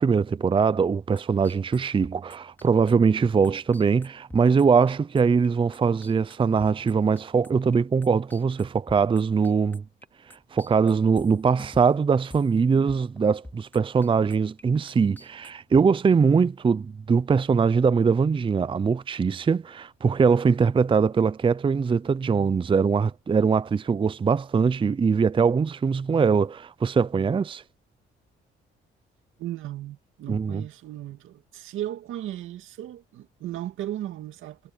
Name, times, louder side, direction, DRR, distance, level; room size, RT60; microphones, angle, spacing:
voice 1, 0.0-9.8 10.3-27.6 30.3-30.6, right 5 dB, 25° right, 0.5 m, -22 dB
sound 1, 1.2-10.1 10.3-12.6 12.9-13.2 13.4-14.6 14.9-15.9, left 1 dB, 10° left, 2.8 m, -46 dB
voice 2, 29.4-34.7, right 13 dB, 85° right, 2.3 m, -36 dB
cardioid pair, 90°, 20 cm